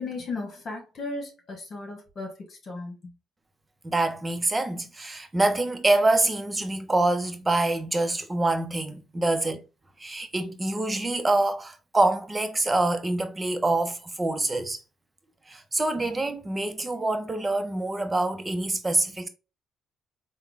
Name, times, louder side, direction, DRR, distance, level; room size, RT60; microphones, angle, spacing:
voice 1, 0.0-3.1, left 3 dB, 50° left, 1.3 m, -36 dB
voice 2, 3.8-9.6 10.0-14.8 15.5-19.3, right 2 dB, 20° right, 0.7 m, -25 dB
3.6 x 2.2 x 3.4 m
supercardioid pair, 65°, 0 cm